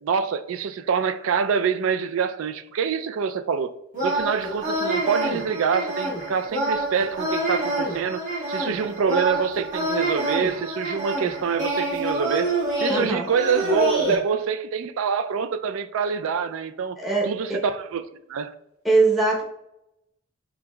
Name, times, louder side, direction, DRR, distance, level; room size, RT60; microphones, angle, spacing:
voice 1, 0.0-3.7 4.0-17.0 17.2-18.0 18.3-18.5, right 6 dB, 70° right, 0.3 m, -26 dB
sound 1, 3.9-14.1, right 1 dB, 40° right, 1.4 m, -27 dB
voice 2, 12.9-13.3 17.0-17.6 18.8-19.4, right 3 dB, ahead, 0.8 m, -21 dB
5.2 x 3.5 x 2.3 m
head